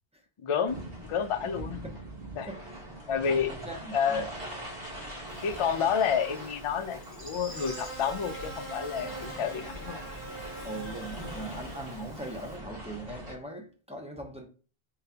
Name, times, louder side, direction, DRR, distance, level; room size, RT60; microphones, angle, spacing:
voice 1, 0.4-0.8 1.1-1.8 2.4-2.5 3.1-3.5 3.9-4.3 5.4-10.0, left 7 dB, 55° left, 0.3 m, -29 dB
sound 1, 0.7-13.3, right 1 dB, 65° right, 1.4 m, -42 dB
voice 2, 2.5-2.9 3.3-4.3 10.6-14.5, right 1 dB, 5° right, 0.6 m, -41 dB
Buzz, 5.3-12.6, right 1 dB, 10° left, 1.9 m, -43 dB
3.8 x 3.7 x 2.8 m
omnidirectional pair, 1.0 m